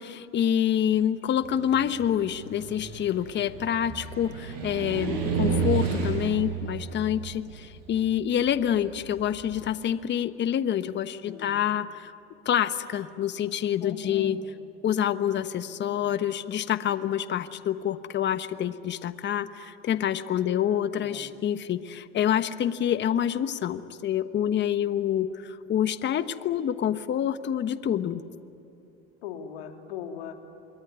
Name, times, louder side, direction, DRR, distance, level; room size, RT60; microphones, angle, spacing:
voice 1, 0.0-12.1 12.4-14.4 14.8-28.2, left 10 dB, 35° left, 12 dB, 1.2 m, -27 dB
Car, 1.4-9.6, right 5 dB, 75° right, 6.2 m, -32 dB
voice 2, 11.2-11.7 13.8-14.4 20.4-21.2 29.2-30.4, left 7 dB, 90° left, 5 dB, 3.1 m, -39 dB
27.5 x 22.0 x 9.7 m, 2.9 s
supercardioid pair, 110°, 30 cm